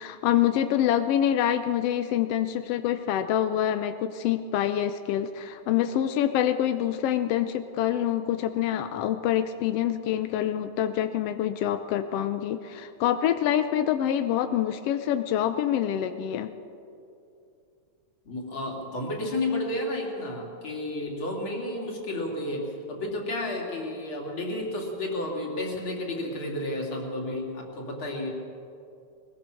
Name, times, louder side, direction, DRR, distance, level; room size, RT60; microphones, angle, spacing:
voice 1, 0.0-16.5, left 10 dB, 75° left, 9 dB, 1.4 m, -26 dB
voice 2, 18.3-28.3, left 1 dB, 40° left, 0 dB, 3.6 m, -32 dB
21.0 x 20.5 x 6.3 m, 2.6 s
omnidirectional pair, 3.4 m